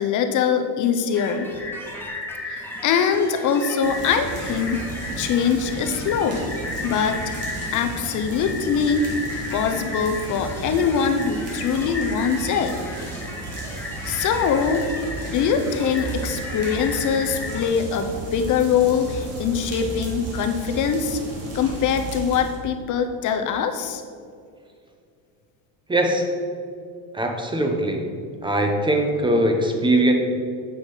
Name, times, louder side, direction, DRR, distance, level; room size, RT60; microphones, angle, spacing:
voice 1, 0.0-1.5 2.5-4.8 5.2-6.4 6.8-7.2 7.7-9.0 9.5-12.7 14.0-14.8 15.3-21.2 21.5-24.0, left 6 dB, 45° left, 7 dB, 0.7 m, -23 dB
sound 1, 1.1-17.7, left 2 dB, 5° left, 1.4 m, -35 dB
sound 2, 3.8-22.6, right 2 dB, 35° right, 2.2 m, -34 dB
voice 2, 25.9-26.3 27.1-28.1 28.4-30.1, right 1 dB, 10° right, 4 dB, 0.9 m, -21 dB
7.8 x 6.1 x 4.9 m, 2.2 s
cardioid pair, 125°, 42 cm